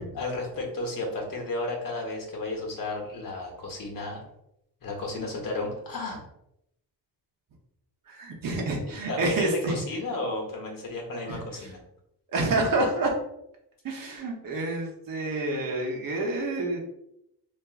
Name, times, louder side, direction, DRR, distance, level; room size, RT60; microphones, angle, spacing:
voice 1, 0.2-4.2 4.8-6.2 9.1-11.8, left 2 dB, 55° left, 1 dB, 1.0 m, -33 dB
voice 2, 8.1-9.8 11.3-11.7 12.3-13.1 13.8-16.8, right 2 dB, 55° right, 1 dB, 0.8 m, -28 dB
3.5 x 2.5 x 2.4 m, 0.81 s
cardioid pair, 90°, 40 cm